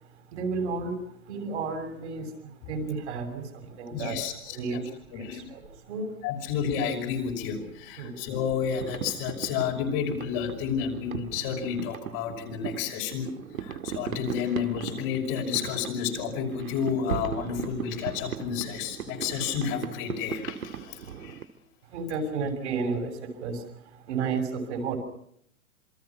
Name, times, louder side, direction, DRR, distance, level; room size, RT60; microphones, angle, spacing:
voice 1, 0.3-1.0 1.3-4.2 4.5-4.8 5.1-6.1 8.0-8.2 21.9-23.7 23.9-25.0, right 4 dB, 55° right, 5 dB, 6.5 m, -32 dB
voice 2, 3.9-4.8 5.1-5.5 6.2-13.3 13.6-21.4, left 7 dB, 35° left, 2 dB, 5.8 m, -31 dB
sound 1, 8.5-21.4, right 8 dB, 70° right, 2.2 m, -38 dB
27.5 x 23.5 x 5.9 m, 0.68 s
hypercardioid pair, 125°, 42 cm